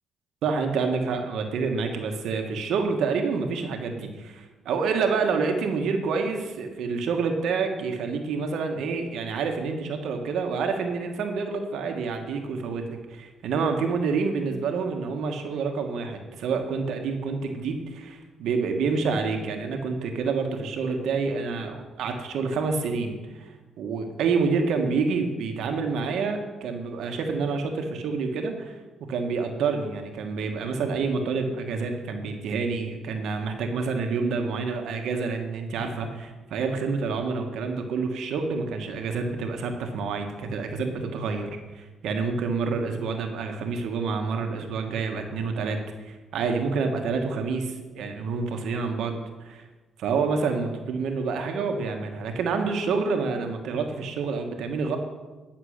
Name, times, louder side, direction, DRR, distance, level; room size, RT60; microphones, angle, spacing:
voice 1, 0.4-23.1 23.4-23.5 23.8-28.7 29.1-41.5 41.7-45.8 46.0-49.1 49.4-49.6 50.0-55.0, right 4 dB, 80° right, 4 dB, 1.4 m, -28 dB
10.0 x 6.6 x 6.5 m, 1.2 s
cardioid pair, 90°, 0 cm